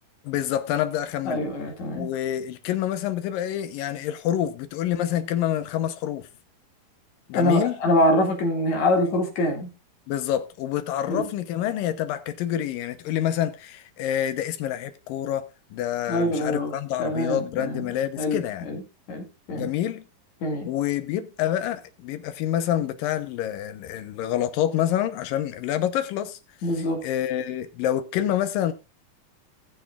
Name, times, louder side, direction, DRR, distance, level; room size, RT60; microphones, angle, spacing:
voice 1, 0.3-1.4 1.9-6.3 7.3-7.8 10.1-18.7 19.5-20.0 20.7-26.4 27.0-28.7, left 11 dB, 85° left, 2.7 m, -27 dB
voice 2, 1.3-2.1 7.3-9.7 11.1-11.3 16.1-16.7 17.0-17.8 18.2-18.8 19.1-19.7 20.4-20.7 26.6-27.0, left 1 dB, 60° left, 3.5 m, -24 dB
19.0 x 7.3 x 2.4 m
omnidirectional pair, 3.9 m